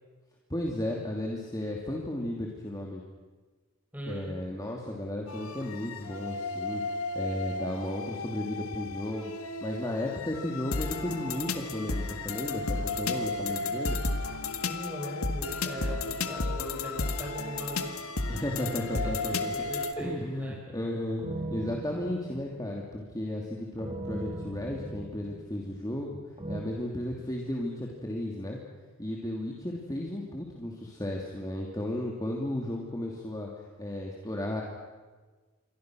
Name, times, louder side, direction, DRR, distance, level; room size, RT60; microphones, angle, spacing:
voice 1, 0.5-3.0 4.1-9.3 9.6-14.0 18.3-19.5 20.0-26.2 26.5-28.6 29.0-33.5 33.8-34.6, left 1 dB, 15° left, -1 dB, 2.7 m, -34 dB
voice 2, 3.9-4.3 14.6-17.9 18.9-20.8, equal, 10° right, -1 dB, 7.0 m, -40 dB
sound 1, 5.3-19.9, left 3 dB, 80° left, 1.8 m, -33 dB
sound 2, 19.5-19.9 21.2-23.0 23.8-26.0 26.4-26.6, right 1 dB, 25° right, 1.8 m, -39 dB
29.0 x 24.0 x 6.3 m, 1.3 s
head